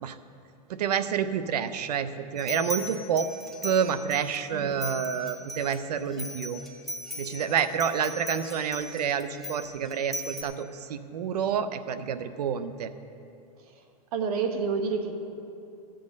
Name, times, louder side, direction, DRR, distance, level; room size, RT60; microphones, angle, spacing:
voice 1, 0.7-3.3 3.6-6.6 7.2-12.9, right 7 dB, 90° right, 12 dB, 0.7 m, -28 dB
sound 1, 2.4-4.4 4.8-10.4, equal, ahead, 1.2 m, -38 dB
voice 2, 14.1-15.2, right 5 dB, 70° right, 5 dB, 1.4 m, -28 dB
14.0 x 7.8 x 5.2 m, 2.7 s
supercardioid pair, 130°, 20 cm